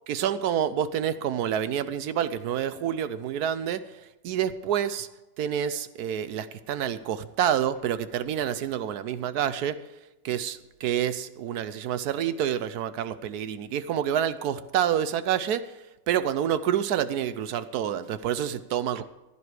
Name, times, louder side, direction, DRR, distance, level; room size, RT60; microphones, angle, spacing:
voice 1, 0.1-4.0 4.2-5.1 5.4-9.8 10.2-15.7 16.1-19.0, right 9 dB, 70° right, 13 dB, 1.0 m, -28 dB
15.5 x 11.0 x 4.8 m, 1.0 s
omnidirectional pair, 2.0 m